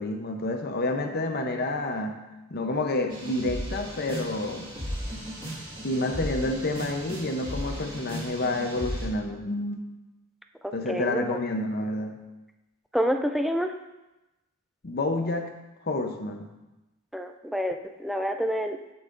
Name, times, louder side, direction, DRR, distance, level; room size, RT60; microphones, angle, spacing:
voice 1, 0.0-2.2 2.5-4.7 5.8-9.8 10.7-12.2 14.8-15.5 15.8-16.5, left 2 dB, 50° left, 4 dB, 0.7 m, -29 dB
sound 1, 3.1-9.1, equal, 25° right, 2.1 m, -35 dB
voice 2, 10.6-11.2 12.9-13.7 17.1-18.9, equal, ahead, 5 dB, 0.3 m, -28 dB
14.5 x 5.5 x 2.6 m, 1.0 s
head